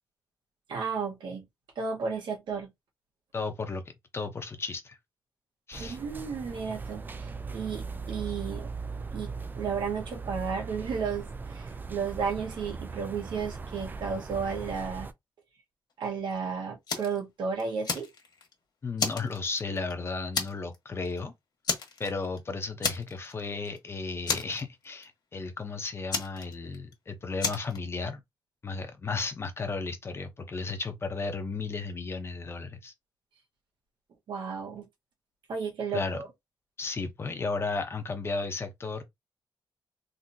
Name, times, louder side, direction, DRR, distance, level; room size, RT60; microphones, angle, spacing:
voice 1, 0.7-1.4 1.7-2.7 5.8-8.7 9.1-15.1 16.0-18.1 34.3-34.9 35.5-36.3, right 5 dB, 75° right, 1.4 m, -33 dB
voice 2, 3.3-3.8 4.1-5.0 5.7-6.0 18.8-21.3 22.0-28.2 28.6-32.9 35.9-36.2 36.8-39.0, left 4 dB, 30° left, 0.7 m, -34 dB
sound 1, 5.7-15.1, right 4 dB, 25° right, 0.4 m, -39 dB
Fire, 16.9-17.2 17.6-18.5 19.0-19.9 20.3-20.8 21.0-21.2 21.6-22.4 22.8-23.4 23.7-23.8 24.3-25.1 26.1-26.9 27.4-27.8, left 5 dB, 60° left, 1.3 m, -31 dB
3.8 x 2.7 x 2.7 m
wide cardioid pair, 150°, 8 cm